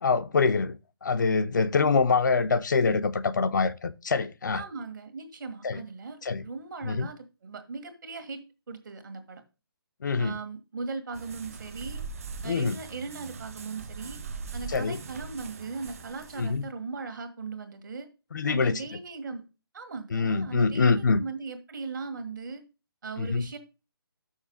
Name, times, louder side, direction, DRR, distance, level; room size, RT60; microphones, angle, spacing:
voice 1, 0.0-0.8 1.0-4.6 5.6-5.8 6.2-6.4 6.8-7.1 10.0-10.3 12.4-12.8 14.7-15.0 16.4-16.6 18.3-18.8 20.1-21.2 23.2-23.5, left 4 dB, 50° left, 0.5 m, -25 dB
voice 2, 4.5-8.4 8.7-9.4 10.2-12.0 12.4-14.2 14.5-18.1 18.5-19.4 19.7-22.6 23.0-23.6, right 4 dB, 50° right, 1.7 m, -38 dB
sound 1, 11.1-16.6, right 4 dB, 35° right, 0.6 m, -41 dB
6.4 x 5.7 x 5.2 m
hypercardioid pair, 170°, 13 cm